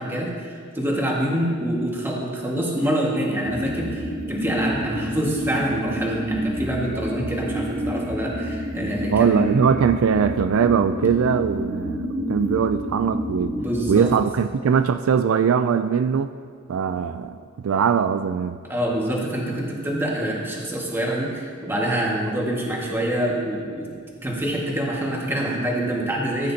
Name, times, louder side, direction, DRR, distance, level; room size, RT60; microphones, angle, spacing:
voice 1, 0.0-9.6 13.5-14.1 18.6-23.9 24.2-26.5, right 1 dB, 10° right, -3 dB, 1.7 m, -26 dB
sound 1, 3.4-14.2, equal, 35° right, 0.9 m, -29 dB
voice 2, 9.1-13.5 13.9-16.3 16.7-18.6, right 7 dB, 75° right, 10 dB, 0.3 m, -21 dB
14.0 x 9.2 x 2.8 m, 2.1 s
head